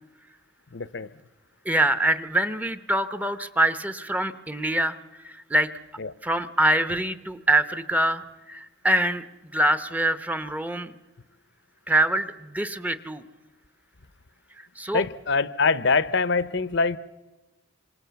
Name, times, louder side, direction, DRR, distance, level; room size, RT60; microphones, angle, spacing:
voice 1, 0.7-1.1 6.0-6.1 14.9-17.0, left 4 dB, 55° left, 0.8 m, -24 dB
voice 2, 1.6-5.0 5.2-5.7 6.2-9.2 9.5-10.9 11.9-13.2 14.6-15.0, right 1 dB, 5° right, 0.8 m, -24 dB
26.5 x 26.0 x 7.0 m
head